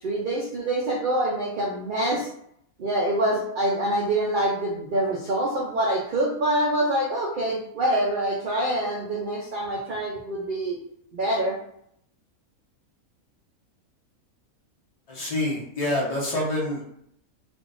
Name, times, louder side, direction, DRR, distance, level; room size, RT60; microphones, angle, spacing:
voice 1, 0.0-2.3 2.8-10.8 11.1-11.6, right 1 dB, 70° right, -3 dB, 0.4 m, -25 dB
voice 2, 15.1-16.8, left 1 dB, 50° left, -4 dB, 0.4 m, -27 dB
3.5 x 2.5 x 2.5 m, 0.71 s
omnidirectional pair, 1.5 m